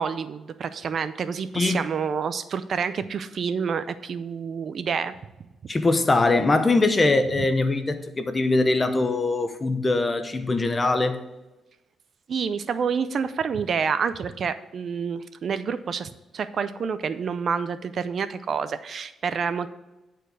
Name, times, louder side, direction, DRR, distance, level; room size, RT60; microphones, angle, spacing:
voice 1, 0.0-5.1 12.3-19.7, right 6 dB, 50° right, 0.4 m, -28 dB
voice 2, 5.7-11.2, left 2 dB, 20° left, 0.7 m, -22 dB
10.0 x 4.5 x 4.8 m
cardioid pair, 125°, 0 cm